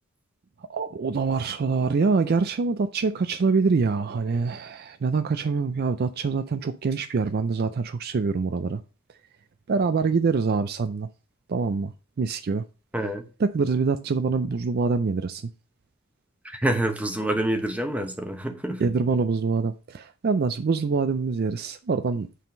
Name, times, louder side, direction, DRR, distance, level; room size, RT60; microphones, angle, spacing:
voice 1, 0.7-8.8 9.7-11.1 11.5-11.9 12.2-12.6 13.4-15.5 18.8-22.5, right 4 dB, 45° right, 0.4 m, -25 dB
voice 2, 16.5-18.8, right 1 dB, 5° right, 0.9 m, -27 dB
8.3 x 3.7 x 5.0 m
head